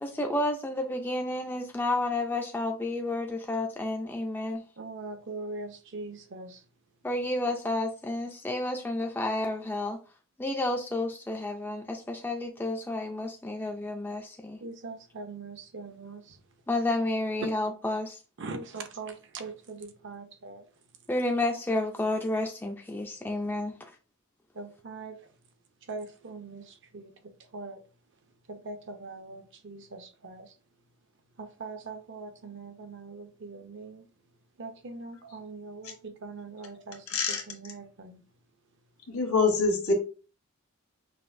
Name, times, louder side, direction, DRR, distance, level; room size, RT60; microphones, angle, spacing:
voice 1, 0.0-4.6 7.0-10.0 10.4-14.6 16.7-18.2 21.1-23.8, left 2 dB, 10° left, 0.3 m, -30 dB
voice 2, 4.8-6.6 14.6-16.4 18.4-20.7 24.5-25.2 25.9-27.1 27.5-27.8 28.5-30.5 31.4-34.0 34.6-38.2, right 3 dB, 55° right, 0.6 m, -42 dB
voice 3, 37.1-37.4 39.1-39.9, left 4 dB, 75° left, 1.2 m, -25 dB
5.6 x 2.5 x 2.6 m
head